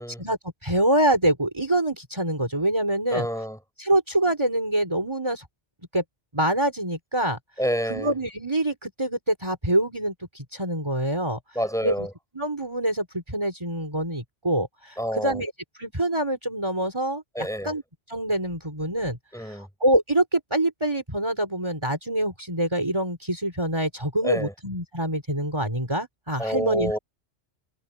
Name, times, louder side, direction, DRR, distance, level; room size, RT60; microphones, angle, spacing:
voice 1, 0.2-3.3 3.8-5.5 5.9-6.0 6.3-7.4 7.9-11.4 11.8-12.1 12.3-15.5 15.8-17.8 18.1-27.0, right 1 dB, 25° right, 4.9 m, -25 dB
voice 2, 3.1-3.6 7.6-8.1 11.5-12.1 15.0-15.4 17.3-17.7 19.3-19.7 24.2-24.5 26.4-27.0, equal, 5° left, 7.7 m, -28 dB
omnidirectional pair, 1.2 m